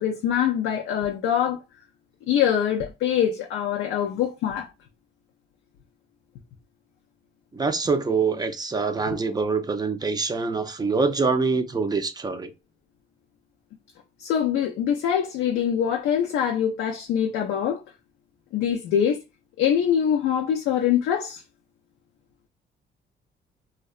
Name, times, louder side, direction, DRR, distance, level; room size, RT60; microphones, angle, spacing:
voice 1, 0.0-1.6 2.3-4.7 14.2-17.8 18.5-19.2 19.6-21.4, left 9 dB, 85° left, 0.4 m, -24 dB
voice 2, 7.5-12.5, right 4 dB, 20° right, 0.4 m, -25 dB
2.7 x 2.2 x 2.3 m
cardioid pair, 90°, 20 cm